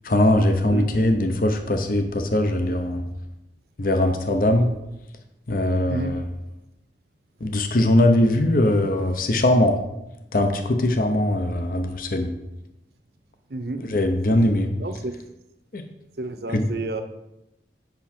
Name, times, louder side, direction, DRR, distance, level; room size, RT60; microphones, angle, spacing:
voice 1, 0.0-3.0 3.8-4.7 5.5-6.2 7.4-9.8 10.3-12.3 13.9-14.7 15.7-15.8 16.5-16.6, left 1 dB, 50° left, 6 dB, 0.7 m, -21 dB
voice 2, 5.9-6.2 13.5-13.8 14.8-15.2 16.2-17.0, right 2 dB, 60° right, 8 dB, 0.7 m, -30 dB
7.9 x 5.8 x 4.3 m, 0.91 s
head